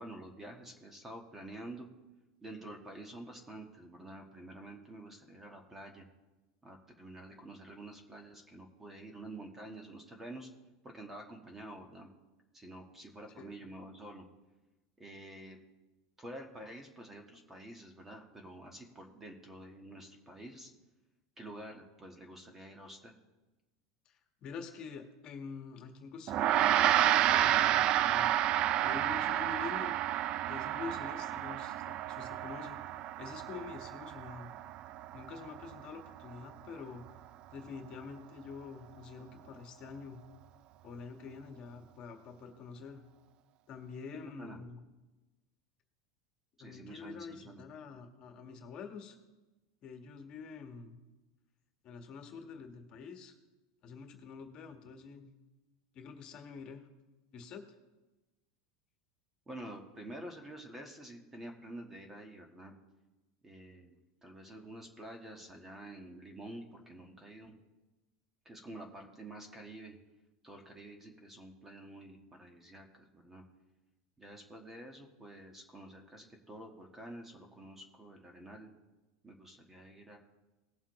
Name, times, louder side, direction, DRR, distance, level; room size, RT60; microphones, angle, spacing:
voice 1, 0.0-1.9 2.4-6.1 6.6-10.5 10.8-12.1 12.5-14.3 15.0-15.6 16.2-20.7 21.4-23.1 44.1-44.6 46.6-47.6 59.5-62.8 63.4-63.9 64.2-67.5 68.4-70.0 70.4-73.4 74.2-78.7 79.2-80.2, right 1 dB, 10° right, 3 dB, 1.4 m, -48 dB
voice 2, 24.0-30.0 30.5-32.8 33.2-34.5 35.1-37.0 37.5-40.2 40.8-43.0 43.7-44.8 46.6-49.2 49.8-51.0 51.8-53.3 53.8-55.3 55.9-56.9 57.3-57.6, left 5 dB, 40° left, 5 dB, 1.5 m, -46 dB
Gong, 26.3-35.9, right 12 dB, 40° right, 0.3 m, -30 dB
19.0 x 7.2 x 3.2 m, 1.1 s
supercardioid pair, 140°, 2 cm